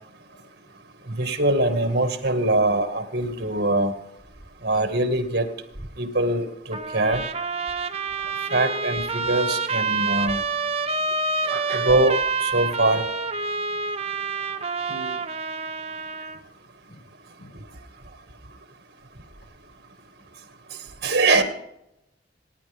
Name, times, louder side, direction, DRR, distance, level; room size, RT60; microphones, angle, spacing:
voice 1, 1.1-3.9 4.6-5.5 6.0-7.2 8.5-10.4 11.5-13.0 21.0-21.4, right 2 dB, 60° right, 7 dB, 1.9 m, -23 dB
Trumpet, 6.7-16.4, right 4 dB, 35° right, 0.8 m, -28 dB
voice 2, 14.9-15.2 16.9-17.0 17.4-17.6 21.4-21.5, right 2 dB, 75° left, 2 dB, 1.8 m, -40 dB
26.5 x 9.9 x 3.6 m, 0.83 s
head